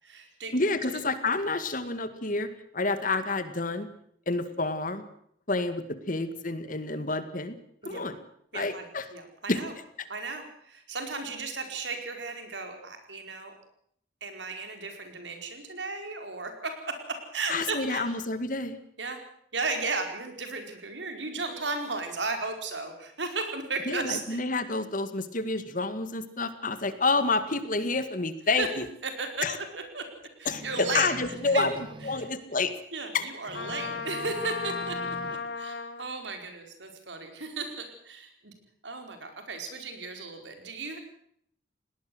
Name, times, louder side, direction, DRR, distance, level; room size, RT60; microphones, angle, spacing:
voice 1, 0.0-0.6 0.8-1.0 7.8-8.0 8.5-8.8 9.1-9.7 10.1-13.5 14.2-18.1 19.0-19.2 19.5-24.4 28.6-28.7 29.0-29.5 29.7-30.1 30.4-31.7 32.1-32.3 32.9-35.0 35.6-38.5 38.8-41.0, right 3 dB, 85° right, 5 dB, 4.9 m, -35 dB
voice 2, 0.5-2.5 2.7-3.9 4.3-5.0 5.5-7.5 7.8-8.2 8.5-9.1 9.5-9.6 17.5-18.8 23.9-28.9 29.4-29.6 30.5-31.7 32.0-32.7 33.1-33.2, left 3 dB, 45° left, 11 dB, 2.0 m, -29 dB
sound 1, 30.5-32.3 33.4-35.4, right 1 dB, 30° right, 1.8 m, -44 dB
Trumpet, 33.5-36.0, left 4 dB, 70° left, 1.9 m, -35 dB
20.0 x 18.5 x 7.9 m, 0.68 s
head